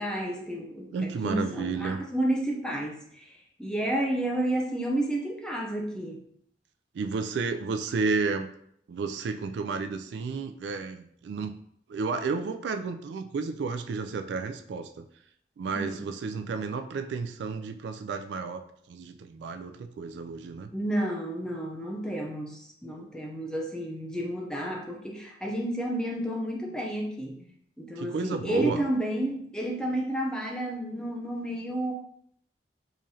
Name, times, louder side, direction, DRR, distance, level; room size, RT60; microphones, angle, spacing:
voice 1, 0.0-6.2 15.7-16.0 20.7-27.5 27.8-31.9, right 1 dB, 5° left, -1 dB, 0.5 m, -31 dB
voice 2, 0.9-2.0 6.9-8.5 8.9-11.5 11.9-15.1 15.6-20.7 28.0-28.9, right 4 dB, 80° right, 7 dB, 0.3 m, -32 dB
3.8 x 3.1 x 2.7 m, 0.68 s
head